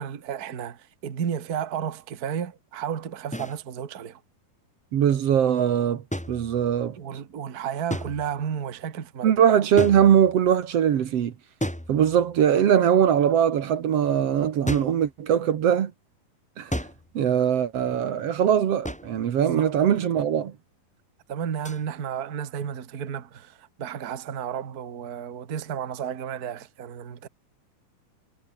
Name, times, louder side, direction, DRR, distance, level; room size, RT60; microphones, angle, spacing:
voice 1, 0.0-4.2 7.0-9.3 19.4-19.7 21.3-27.3, right 8 dB, 80° right, 0.8 m, -32 dB
sound 1, 3.3-3.6 6.1-6.9 7.9-8.5 9.8-10.5 11.6-12.4 14.7-15.1 16.7-17.2 18.8-19.3 21.6-21.8, equal, ahead, 3.1 m, -33 dB
voice 2, 4.9-7.0 9.2-11.3 11.9-15.9 16.6-16.7 17.1-20.5, right 9 dB, 55° right, 1.9 m, -21 dB
omnidirectional pair, 4.4 m